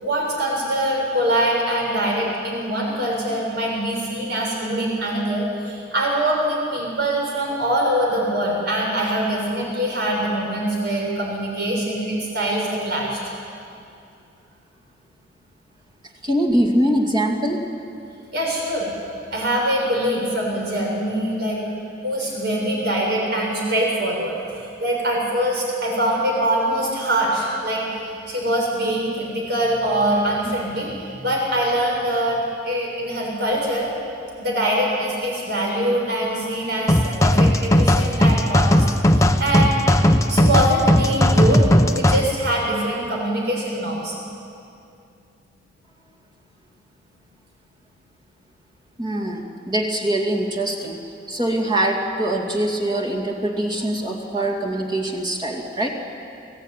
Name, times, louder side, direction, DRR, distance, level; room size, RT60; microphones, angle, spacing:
voice 1, 0.0-13.2 18.3-18.9 19.3-21.6 22.0-32.4 32.6-33.9 34.4-41.6 41.9-44.1, right 1 dB, 60° right, -2 dB, 6.6 m, -23 dB
voice 2, 16.2-17.7 49.0-51.0 51.3-55.9, right 1 dB, 25° right, -2 dB, 2.6 m, -23 dB
sound 1, 36.9-42.2, left 1 dB, 15° left, 0.8 m, -17 dB
25.0 x 16.5 x 9.4 m, 2.6 s
head